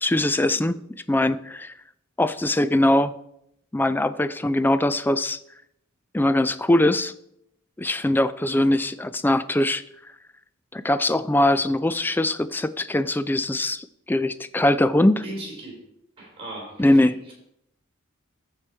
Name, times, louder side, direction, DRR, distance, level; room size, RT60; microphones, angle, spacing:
voice 1, 0.0-0.8 1.1-1.7 2.2-3.1 3.7-5.4 6.1-7.1 7.8-9.8 10.7-15.2 16.8-17.1, left 1 dB, 10° left, 14 dB, 0.3 m, -21 dB
voice 2, 15.2-15.8 16.2-17.3, right 1 dB, 25° right, -1 dB, 3.7 m, -37 dB
14.0 x 4.9 x 4.4 m, 0.77 s
head